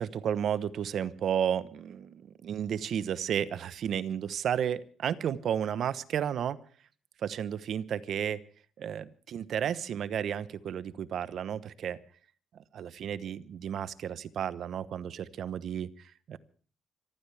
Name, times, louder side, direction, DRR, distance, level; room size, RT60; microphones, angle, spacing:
voice 1, 0.0-6.6 7.2-8.4 8.8-12.0 12.5-16.4, right 9 dB, 65° right, 15 dB, 1.1 m, -32 dB
26.0 x 14.5 x 3.5 m, 0.42 s
cardioid pair, 90°, 0 cm